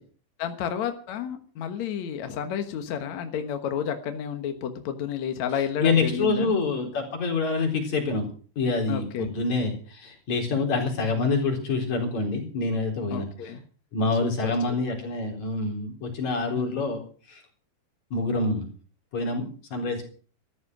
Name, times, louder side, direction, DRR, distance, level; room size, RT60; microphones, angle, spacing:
voice 1, 0.4-6.5 8.9-9.3 10.6-10.8 13.1-13.6 14.2-14.5 16.5-16.8, left 8 dB, 70° left, 7 dB, 1.7 m, -31 dB
voice 2, 5.8-8.3 8.6-13.6 13.9-17.0 17.3-17.4 18.1-18.7 19.1-19.5 19.7-20.1, left 3 dB, 40° left, 2 dB, 5.0 m, -26 dB
14.5 x 13.0 x 6.1 m, 0.42 s
omnidirectional pair, 5.1 m